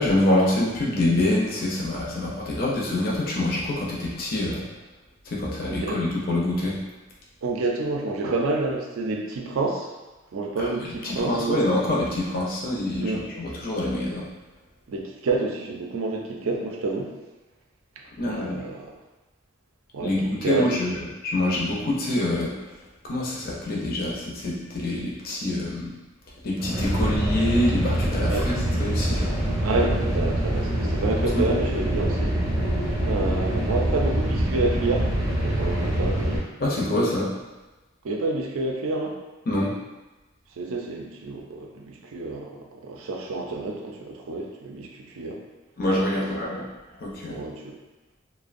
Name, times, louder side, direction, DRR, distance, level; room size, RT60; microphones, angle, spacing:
voice 1, 0.0-4.6 5.3-6.8 10.6-10.7 11.0-14.3 18.2-18.6 20.0-22.5 23.0-25.9 26.4-28.5 28.8-29.3 31.3-31.5 36.6-37.3 39.5-39.7 45.8-46.6 47.0-47.4, left 1 dB, 45° left, -4 dB, 0.4 m, -25 dB
voice 2, 5.6-6.0 7.4-9.9 10.3-11.6 13.0-13.2 14.9-17.1 18.2-18.9 19.9-20.8 28.2-28.5 29.6-32.4 33.0-35.1 35.4-36.4 38.0-39.2 40.6-45.4 46.2-46.4 47.3-47.8, right 3 dB, 80° right, 0 dB, 0.4 m, -28 dB
sound 1, 26.6-36.4, right 1 dB, 15° right, 0.4 m, -25 dB
2.5 x 2.1 x 2.4 m, 1.1 s
head